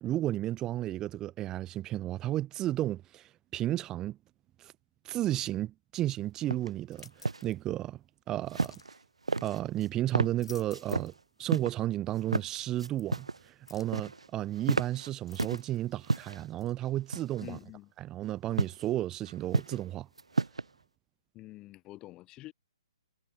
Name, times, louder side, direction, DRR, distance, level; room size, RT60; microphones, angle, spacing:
voice 1, 0.0-4.2 4.6-4.7 5.0-7.1 7.4-8.0 8.3-8.7 9.4-11.1 11.4-17.6 18.0-20.1, right 14 dB, 15° right, 1.5 m, -33 dB
sound 1, 6.5-6.7 7.0-7.4 8.5-9.0 9.3-9.9 10.1-10.3 10.7-11.1 11.5-11.7 12.2-12.5 12.8-13.4 13.7-14.3 14.6-15.6 16.0-16.4 17.1-17.6 18.6-18.8 19.3-19.9 20.2-20.7, right 3 dB, 75° right, 0.7 m, -31 dB
sound 2, 6.9-7.6 8.6-8.9 10.2-11.2 11.5-11.6 13.0-13.1 13.7-14.0 15.3-15.9 16.6-16.7, left 5 dB, 60° left, 5.3 m, -53 dB
voice 2, 17.4-17.9 21.3-22.5, left 17 dB, 20° left, 7.4 m, -47 dB
figure-of-eight pair, 130°, 3 cm